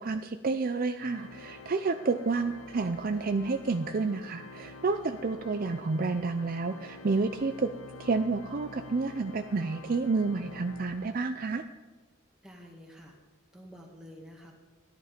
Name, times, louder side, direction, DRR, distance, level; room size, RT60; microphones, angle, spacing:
voice 1, 0.0-7.7 8.0-11.6, right 4 dB, 45° right, 8 dB, 0.5 m, -30 dB
Organ, 0.9-11.6, left 3 dB, 70° left, 0.6 m, -48 dB
voice 2, 12.4-13.2 13.5-14.5, equal, 5° right, 0 dB, 2.0 m, -49 dB
13.5 x 11.0 x 5.1 m, 1.3 s
head